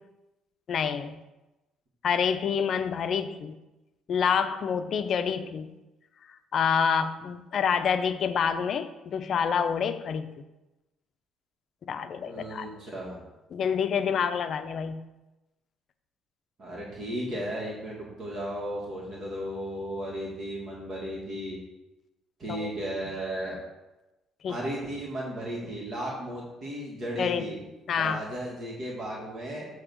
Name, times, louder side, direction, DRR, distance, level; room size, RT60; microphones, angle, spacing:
voice 1, 0.7-1.2 2.0-3.5 4.1-5.7 6.5-10.3 11.9-12.7 13.5-15.0 22.5-22.7 24.4-24.6 27.2-27.5 27.9-28.2, left 7 dB, 55° left, 10 dB, 0.5 m, -27 dB
voice 2, 12.2-13.2 16.6-21.6 22.4-23.6 24.5-27.6 28.0-29.7, right 1 dB, 50° right, -4 dB, 1.9 m, -35 dB
7.8 x 2.9 x 6.1 m, 1.0 s
cardioid pair, 90°, 0 cm